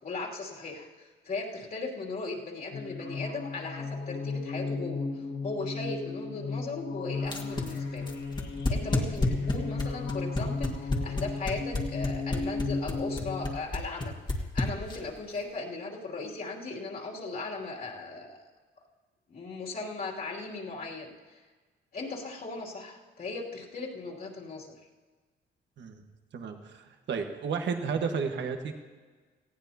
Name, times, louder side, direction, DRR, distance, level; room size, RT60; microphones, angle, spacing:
voice 1, 0.0-8.1 8.7-18.4 19.3-21.4 21.9-24.7, left 3 dB, 50° left, -3 dB, 2.9 m, -38 dB
sound 1, 2.7-13.6, left 4 dB, 75° left, 5.2 m, -35 dB
sound 2, 7.2-15.2, left 2 dB, 20° left, 1.8 m, -29 dB
voice 2, 26.3-28.7, right 5 dB, 65° right, 5 dB, 1.5 m, -32 dB
18.5 x 15.0 x 2.9 m, 1.4 s
cardioid pair, 90°, 20 cm